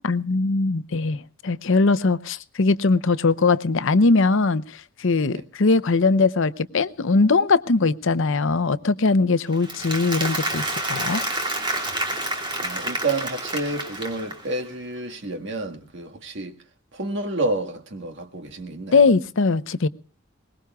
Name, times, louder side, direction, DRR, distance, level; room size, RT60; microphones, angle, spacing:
voice 1, 0.0-11.2 18.9-19.9, left 3 dB, 65° left, 0.7 m, -20 dB
Applause, 9.5-14.6, right 2 dB, 25° right, 2.8 m, -28 dB
voice 2, 12.6-16.6 16.9-19.1, right 2 dB, 60° right, 1.7 m, -29 dB
22.0 x 20.0 x 2.3 m
head